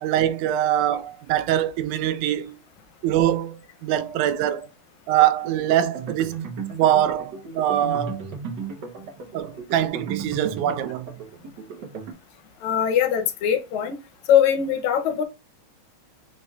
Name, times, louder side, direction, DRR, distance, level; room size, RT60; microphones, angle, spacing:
voice 1, 0.0-2.6 3.0-4.7 5.1-6.4 6.8-8.2 9.3-11.1, right 11 dB, 85° right, 2.0 m, -23 dB
sound 1, 5.4-12.1, right 5 dB, 70° right, 1.0 m, -35 dB
voice 2, 12.6-14.0 14.3-15.2, left 9 dB, 75° left, 2.0 m, -21 dB
5.2 x 4.2 x 2.3 m
omnidirectional pair, 3.4 m